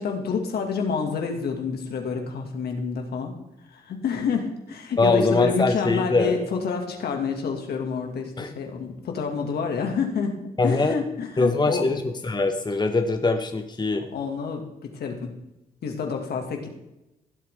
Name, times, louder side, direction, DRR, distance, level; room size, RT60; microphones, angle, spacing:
voice 1, 0.0-3.3 3.8-10.4 10.6-11.9 14.1-15.3 15.8-16.7, left 5 dB, 70° left, 3 dB, 2.3 m, -28 dB
voice 2, 5.0-6.3 8.4-8.5 10.6-11.0 11.4-14.0, left 3 dB, 25° left, 6 dB, 1.2 m, -22 dB
17.0 x 7.8 x 3.7 m, 0.92 s
supercardioid pair, 55°, 17 cm